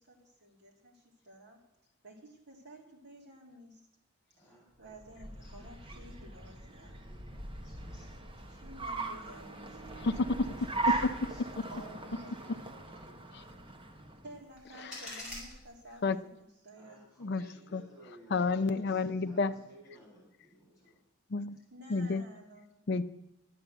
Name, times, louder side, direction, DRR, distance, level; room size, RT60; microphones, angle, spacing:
voice 1, 0.0-1.6 2.0-3.8 4.8-7.4 8.6-10.1 11.7-12.5 14.2-17.0 17.4-17.5 21.7-22.8, right 1 dB, 50° right, -1 dB, 2.8 m, -52 dB
voice 2, 4.3-4.9 5.4-5.5 5.9-6.5 6.8-8.6 10.8-13.7 16.7-21.0, equal, 15° left, -5 dB, 6.5 m, -59 dB
Car, 4.8-14.4, right 3 dB, 25° right, 0.9 m, -39 dB
voice 3, 10.0-10.5 16.0-16.2 17.2-17.4 17.7-17.8 18.3-19.5 21.3-21.6 21.9-22.2 22.9-23.0, left 3 dB, 50° left, 11 dB, 0.5 m, -30 dB
sound 1, 14.3-16.3, left 1 dB, 5° right, 5.4 m, -47 dB
11.5 x 8.7 x 7.9 m, 0.88 s
head